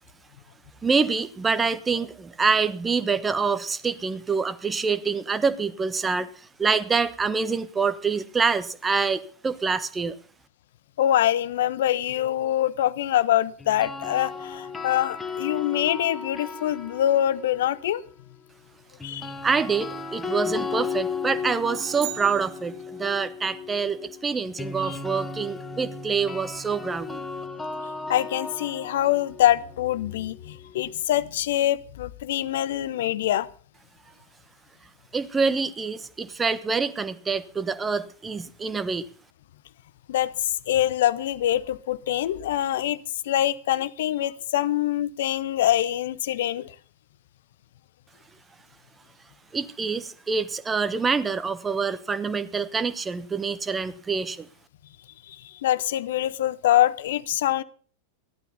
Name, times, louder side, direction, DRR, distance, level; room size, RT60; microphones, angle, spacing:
voice 1, 0.8-6.3 6.6-10.2 19.4-27.2 35.1-39.1 49.5-54.5, right 5 dB, 15° right, 1.2 m, -26 dB
voice 2, 11.0-18.0 19.0-19.3 24.9-25.0 28.1-33.5 40.1-43.0 43.2-46.7 55.3-57.6, left 12 dB, 55° left, 0.8 m, -24 dB
sound 1, 13.6-17.8 19.0-30.9, left 4 dB, 10° left, 1.9 m, -35 dB
sound 2, 21.7-23.2, right 17 dB, 40° right, 0.7 m, -37 dB
15.0 x 11.5 x 5.5 m
figure-of-eight pair, 90°, 0 cm